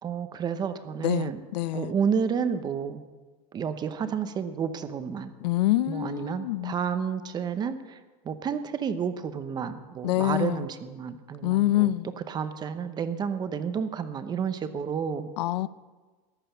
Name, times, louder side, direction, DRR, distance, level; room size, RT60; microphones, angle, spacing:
voice 1, 0.0-1.4 1.7-3.0 3.5-5.3 5.9-8.0 8.2-11.9 12.3-15.3, right 7 dB, 20° right, 11 dB, 0.8 m, -30 dB
voice 2, 1.0-1.9 5.4-6.7 10.0-10.6 11.4-12.1 15.4-15.7, left 15 dB, 75° left, 17 dB, 0.6 m, -26 dB
14.5 x 11.0 x 6.9 m, 1.3 s
supercardioid pair, 155°, 21 cm